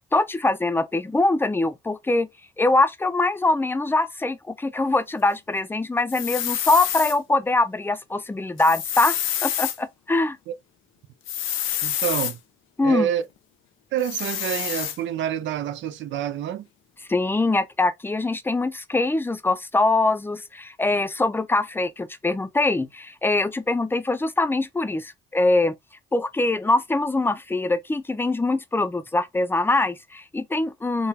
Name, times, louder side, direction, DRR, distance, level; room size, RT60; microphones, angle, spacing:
voice 1, 0.1-2.3 2.6-10.4 12.8-13.1 17.1-25.7 26.1-31.1, left 2 dB, 10° left, 0.5 m, -23 dB
sound 1, 6.1-7.2 8.6-9.8 11.3-12.3 14.0-15.0, left 11 dB, 90° left, 0.6 m, -27 dB
voice 2, 11.8-12.4 12.8-13.2 13.9-16.7, right 10 dB, 70° right, 0.4 m, -27 dB
3.8 x 2.2 x 2.8 m
cardioid pair, 90°, 20 cm